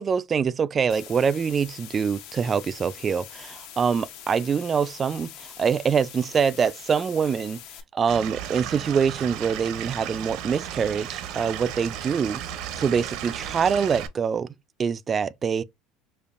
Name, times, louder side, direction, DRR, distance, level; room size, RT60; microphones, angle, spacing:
voice 1, 0.0-7.6 7.9-12.4 12.8-14.5 14.8-15.6, right 6 dB, 30° right, 0.3 m, -25 dB
sound 1, 0.9-7.8, left 10 dB, 70° left, 0.9 m, -44 dB
Stream / Liquid, 8.1-14.1, right 10 dB, 65° right, 0.6 m, -35 dB
5.2 x 2.3 x 2.4 m
supercardioid pair, 120°, 0 cm